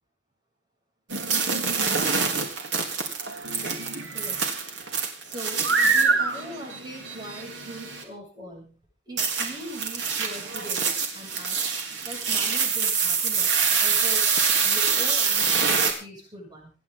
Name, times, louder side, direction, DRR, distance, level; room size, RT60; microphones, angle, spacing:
sound 1, 1.1-8.0 9.2-15.9, right 5 dB, 75° right, 3.6 m, -25 dB
voice 1, 4.1-4.5 5.2-8.8 9.1-11.6 12.0-14.3 14.6-16.7, equal, 20° right, -2 dB, 7.7 m, -41 dB
27.0 x 10.5 x 3.9 m, 0.33 s
head